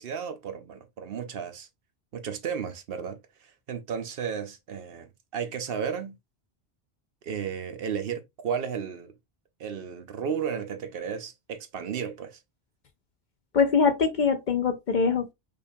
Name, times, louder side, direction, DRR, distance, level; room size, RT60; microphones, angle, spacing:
voice 1, 0.0-1.7 2.1-6.1 7.2-9.1 9.6-12.4, right 7 dB, 65° right, 0.8 m, -34 dB
voice 2, 13.5-15.3, left 5 dB, 55° left, 0.6 m, -23 dB
5.1 x 2.4 x 2.6 m
omnidirectional pair, 1.1 m